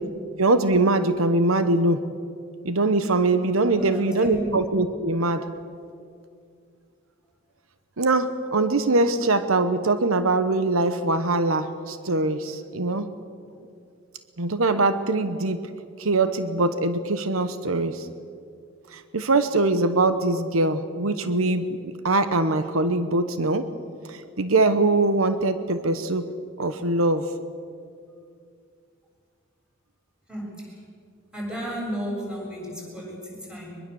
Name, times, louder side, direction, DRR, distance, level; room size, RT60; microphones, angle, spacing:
voice 1, 0.4-2.0 2.6-5.5 8.0-13.1 14.4-15.7 16.0-18.1 18.9-23.7 24.1-26.3 26.6-27.2, right 2 dB, 90° right, 10 dB, 1.1 m, -22 dB
voice 2, 3.7-4.5 30.3-30.8 31.3-33.8, equal, 5° right, -3 dB, 7.3 m, -33 dB
23.5 x 22.5 x 7.1 m, 2.3 s
head